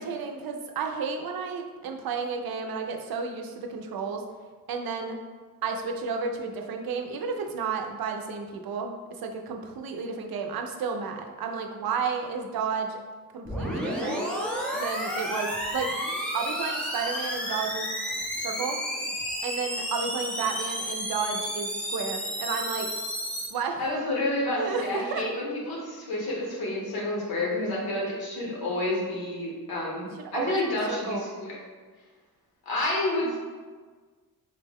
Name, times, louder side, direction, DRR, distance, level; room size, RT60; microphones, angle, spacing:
voice 1, 0.0-4.2 4.7-5.2 5.6-8.9 9.2-13.0 13.3-14.3 14.7-15.9 16.3-17.9 18.4-18.8 19.4-22.9 23.5-23.8 24.6-25.2 30.3-31.3, right 5 dB, 80° right, 3 dB, 0.5 m, -32 dB
sound 1, 13.5-23.5, equal, 5° left, 0.4 m, -31 dB
voice 2, 23.8-31.6 32.7-33.4, left 1 dB, 85° left, -4 dB, 1.0 m, -29 dB
3.8 x 2.1 x 3.4 m, 1.5 s
wide cardioid pair, 170°, 36 cm